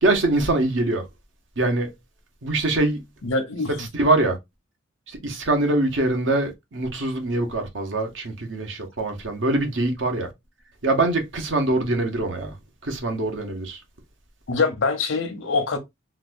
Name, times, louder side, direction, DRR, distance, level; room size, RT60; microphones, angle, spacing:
voice 1, 0.0-1.1 1.6-1.9 2.4-3.0 3.8-4.4 5.1-10.3 10.8-12.6 12.8-13.8, right 2 dB, 70° right, 0.9 m, -23 dB
voice 2, 3.2-3.9 14.5-15.8, left 4 dB, 75° left, 0.8 m, -24 dB
3.9 x 2.3 x 2.5 m
head